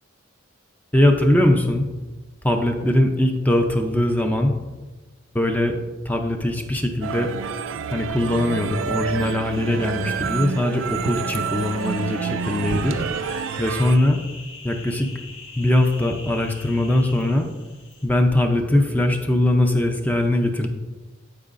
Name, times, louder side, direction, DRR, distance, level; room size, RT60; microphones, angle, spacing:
voice 1, 0.9-1.8 2.4-4.6 5.3-5.8 6.0-7.3 7.9-13.0 13.6-14.2 14.6-15.1 15.6-17.5 18.0-20.7, left 1 dB, 10° left, 4 dB, 0.5 m, -21 dB
sound 1, 7.0-14.0, right 6 dB, 75° right, 0.3 m, -28 dB
sound 2, 9.5-18.1, left 3 dB, 75° left, 1.5 m, -43 dB
13.5 x 4.7 x 2.5 m, 1.2 s
head